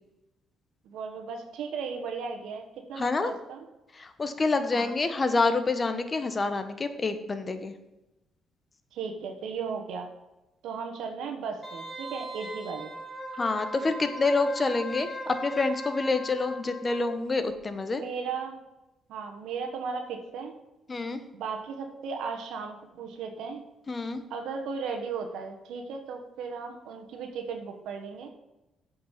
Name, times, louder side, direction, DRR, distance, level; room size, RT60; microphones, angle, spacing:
voice 1, 0.8-3.6 4.7-4.9 8.9-10.1 10.6-12.9 17.9-18.6 19.1-20.5 21.3-23.6 24.3-28.3, right 5 dB, 85° right, 4 dB, 1.3 m, -36 dB
voice 2, 3.0-3.3 3.9-7.7 13.4-18.0 20.9-21.2 23.9-24.2, left 3 dB, 30° left, 9 dB, 1.1 m, -27 dB
Wind instrument woodwind instrument, 11.6-17.2 17.5-17.6, right 1 dB, ahead, 3.2 m, -38 dB
8.2 x 5.6 x 7.3 m, 0.97 s
cardioid pair, 90°, 0 cm